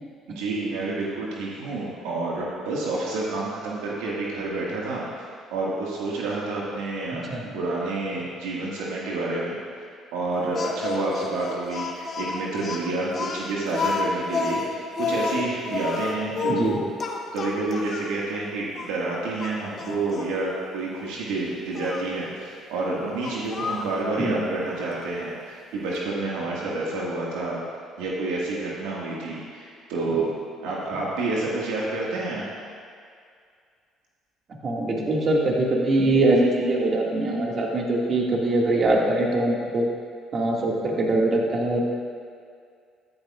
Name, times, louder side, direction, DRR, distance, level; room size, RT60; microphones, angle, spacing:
voice 1, 0.3-5.0 5.5-7.3 7.5-9.6 10.1-16.8 17.3-27.6 28.0-30.3 30.6-32.4, right 2 dB, 80° right, -5 dB, 1.7 m, -29 dB
Speech, 10.5-18.1 18.7-18.9 19.4-20.3 21.7-22.1 23.2-24.0, left 4 dB, 50° left, 1.2 m, -30 dB
voice 2, 16.5-16.8 24.2-24.3 34.6-39.9 40.3-41.9, right 2 dB, 45° right, -2 dB, 1.9 m, -22 dB
14.0 x 11.5 x 2.4 m, 2.2 s
hypercardioid pair, 60°, 0 cm